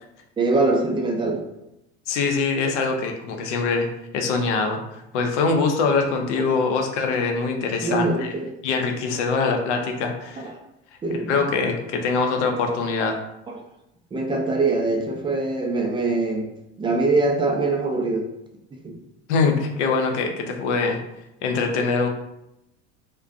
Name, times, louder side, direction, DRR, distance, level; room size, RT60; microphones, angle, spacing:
voice 1, 0.4-1.4 6.3-6.6 7.8-8.5 10.4-10.5 11.0-11.4 13.5-13.6 14.1-16.5 16.8-18.3 18.7-19.0, right 3 dB, 15° right, 1 dB, 0.3 m, -23 dB
voice 2, 2.1-3.9 4.1-4.8 5.1-8.3 8.6-10.5 11.3-13.2 19.3-21.0 21.4-22.1, left 4 dB, 75° left, 4 dB, 0.5 m, -23 dB
2.4 x 2.1 x 2.4 m, 0.86 s
hypercardioid pair, 75°, 36 cm